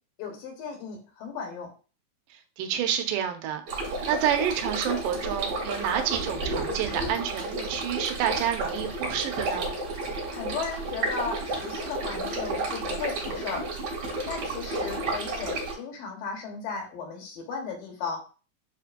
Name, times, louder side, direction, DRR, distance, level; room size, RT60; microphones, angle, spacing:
voice 1, 0.2-1.7 10.3-13.7 14.3-18.2, left 5 dB, 80° left, 2 dB, 2.7 m, -36 dB
voice 2, 2.3-9.7, right 9 dB, 80° right, 7 dB, 2.0 m, -29 dB
sound 1, 3.7-15.7, right 2 dB, 55° right, 2.1 m, -31 dB
7.1 x 2.6 x 2.5 m, 0.36 s
omnidirectional pair, 3.9 m